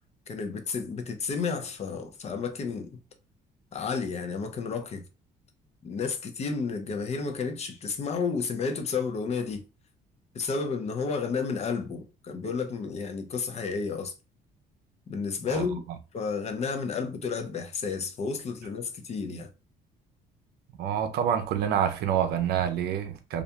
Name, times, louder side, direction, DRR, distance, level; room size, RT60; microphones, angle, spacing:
voice 1, 0.3-3.0 3.7-5.0 5.8-9.6 10.3-14.1 15.1-15.8 16.1-19.5, left 5 dB, 40° left, 0.6 m, -31 dB
voice 2, 20.8-23.4, right 9 dB, 70° right, 0.5 m, -27 dB
2.4 x 2.2 x 2.8 m
cardioid pair, 110°, 17 cm